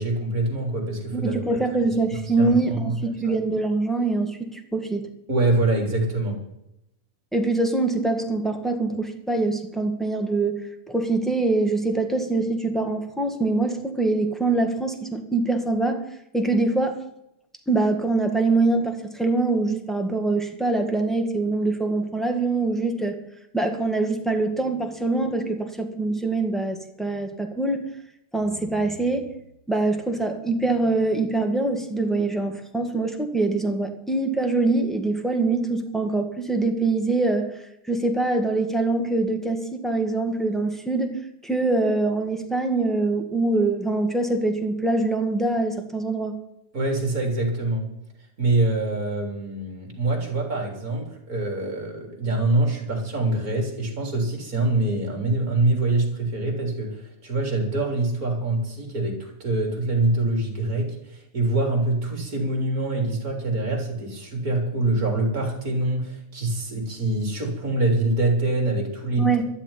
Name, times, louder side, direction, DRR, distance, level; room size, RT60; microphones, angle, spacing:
voice 1, 0.0-1.4 2.3-3.0 5.3-6.4 46.7-47.9 48.4-69.3, right 2 dB, 30° right, 1 dB, 4.0 m, -25 dB
voice 2, 1.1-5.1 7.3-10.6 10.9-16.0 16.3-17.0 17.7-23.2 23.5-27.8 28.3-29.3 29.7-37.6 37.9-46.4 69.2-69.4, right 3 dB, ahead, 3 dB, 0.5 m, -24 dB
13.0 x 7.5 x 9.8 m, 0.83 s
omnidirectional pair, 3.4 m